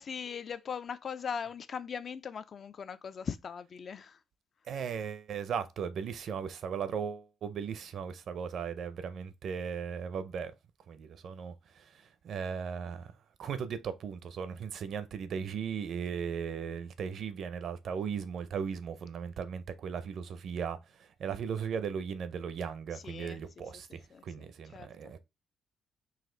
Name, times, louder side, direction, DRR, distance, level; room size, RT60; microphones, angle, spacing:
voice 1, 0.0-4.2 22.9-23.8 24.1-25.1, left 6 dB, 50° left, 0.4 m, -40 dB
voice 2, 4.7-10.5 10.9-13.1 13.4-25.2, right 7 dB, 65° right, 0.6 m, -37 dB
4.1 x 2.4 x 3.8 m
cardioid pair, 90°, 0 cm